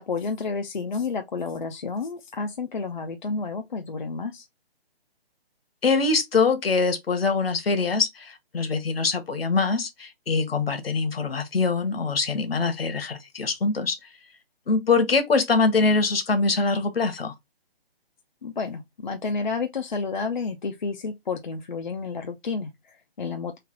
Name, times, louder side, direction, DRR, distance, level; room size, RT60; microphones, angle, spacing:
voice 1, 0.0-4.5 18.4-23.6, left 4 dB, 50° left, 0.5 m, -30 dB
voice 2, 5.8-14.0 14.7-17.3, left 4 dB, 70° left, 1.0 m, -23 dB
3.2 x 2.5 x 3.7 m
hypercardioid pair, 175°, 31 cm